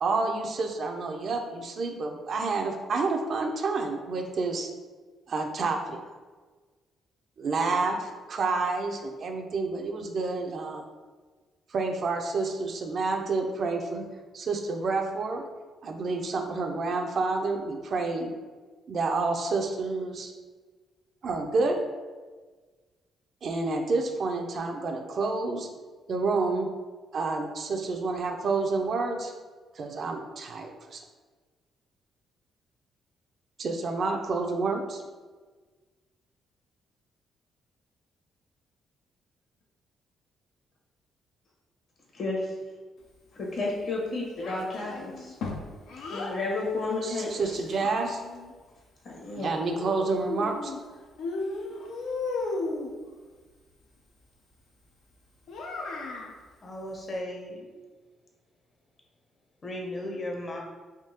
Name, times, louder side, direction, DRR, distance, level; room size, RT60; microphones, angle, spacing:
voice 1, 0.0-4.7 5.3-6.0 7.4-10.9 11.7-14.0 14.3-15.4 15.8-18.3 18.9-20.3 21.2-21.8 23.4-25.7 26.1-26.7 27.1-29.3 29.8-31.0 33.6-35.0 47.0-48.2 49.4-50.7, right 3 dB, 55° right, 3 dB, 0.5 m, -29 dB
voice 2, 42.1-42.5 43.3-45.3 46.1-47.6 49.0-49.5, left 2 dB, 55° left, -3 dB, 1.1 m, -32 dB
Child speech kid speaking, 44.4-46.4 47.3-48.5 49.7-50.8 51.2-52.9 55.5-56.3, left 3 dB, 80° left, 0.5 m, -35 dB
voice 3, 56.6-57.6 59.6-60.6, left 1 dB, 35° left, 0 dB, 0.7 m, -35 dB
3.5 x 2.7 x 2.8 m, 1.4 s
cardioid pair, 90°, 0 cm